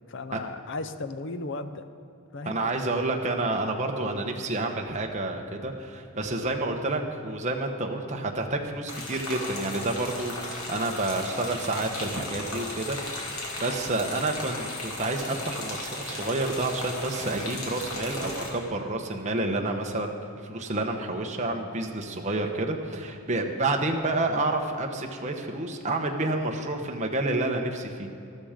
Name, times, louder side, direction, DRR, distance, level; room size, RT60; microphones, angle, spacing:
voice 1, 0.1-1.9 2.3-2.6, left 3 dB, 55° left, 11 dB, 0.6 m, -35 dB
voice 2, 2.4-13.1 13.6-20.2 20.4-28.1, right 2 dB, 30° right, 3 dB, 1.1 m, -29 dB
sound 1, 8.9-18.5, left 2 dB, 75° left, 2.8 m, -36 dB
13.0 x 13.0 x 5.1 m, 2.7 s
head